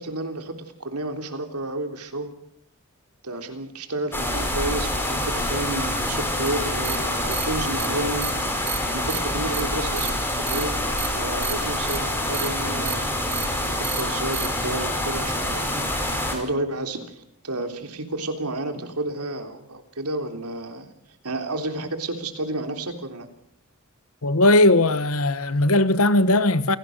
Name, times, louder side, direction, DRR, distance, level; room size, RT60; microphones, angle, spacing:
voice 1, 0.0-2.3 3.2-8.3 8.9-13.1 13.7-15.9 16.3-20.9 21.2-23.3, right 2 dB, 90° right, 3.5 m, -31 dB
sound 1, 4.1-16.4, left 1 dB, 10° left, 5.0 m, -26 dB
sound 2, 6.5-6.6 6.8-7.0 7.3-7.4 7.8-7.9 8.2-8.3 8.7-8.8 9.1-9.2 9.5-9.6 10.0-10.1 10.5-10.6 11.0-11.1 11.4-11.5 11.9-12.0 12.3-12.5 12.9-13.0 13.3-13.4 13.8-14.0 14.3-14.5, right 11 dB, 30° right, 2.1 m, -30 dB
voice 2, 24.2-26.8, left 2 dB, 65° left, 1.3 m, -18 dB
28.5 x 17.5 x 6.7 m
head